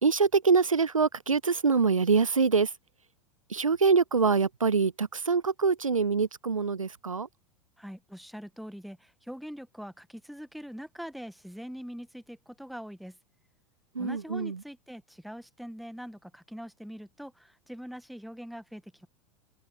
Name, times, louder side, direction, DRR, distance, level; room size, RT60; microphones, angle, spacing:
voice 1, 0.0-2.7 3.5-7.3 14.0-14.6, right 5 dB, 85° right, 0.6 m, -24 dB
voice 2, 7.8-13.2 14.0-19.1, equal, ahead, 1.9 m, -43 dB
open air
figure-of-eight pair, 85°, 17 cm